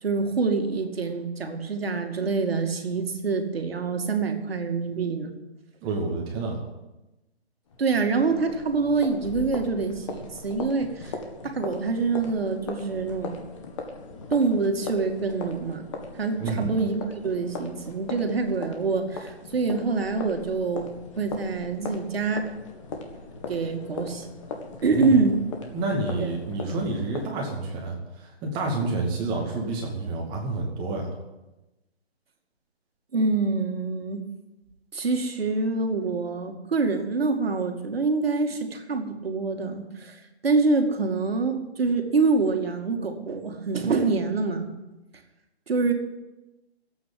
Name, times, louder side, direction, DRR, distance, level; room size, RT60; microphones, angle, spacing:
voice 1, 0.0-5.3 7.8-11.2 11.4-13.4 14.3-15.9 16.1-22.5 23.5-24.3 24.8-25.4 26.2-26.3 33.1-34.2 34.9-44.7 45.7-45.9, right 4 dB, 65° right, 5 dB, 2.4 m, -26 dB
voice 2, 5.8-6.6 16.4-16.7 24.9-25.2 25.7-31.1, right 3 dB, 15° right, -1 dB, 2.4 m, -29 dB
sound 1, 7.7-27.3, left 4 dB, 30° left, 1.8 m, -39 dB
13.0 x 8.8 x 9.7 m, 1.0 s
hypercardioid pair, 160°, 32 cm